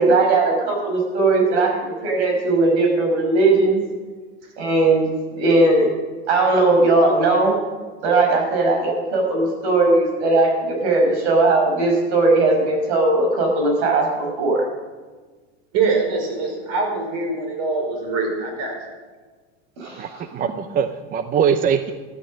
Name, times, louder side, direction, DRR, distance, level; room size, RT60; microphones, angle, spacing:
voice 1, 0.0-1.8 2.0-3.8 4.6-5.1 5.3-5.9 6.3-7.5 8.0-14.1 14.4-14.6 19.8-20.0 20.4-20.5, right 2 dB, 80° right, 1 dB, 5.4 m, -18 dB
voice 2, 15.7-18.7, right 4 dB, 50° right, 2 dB, 5.0 m, -23 dB
voice 3, 20.0-21.9, right 7 dB, 25° right, 11 dB, 0.6 m, -22 dB
12.5 x 12.5 x 6.3 m, 1.4 s
supercardioid pair, 130°, 33 cm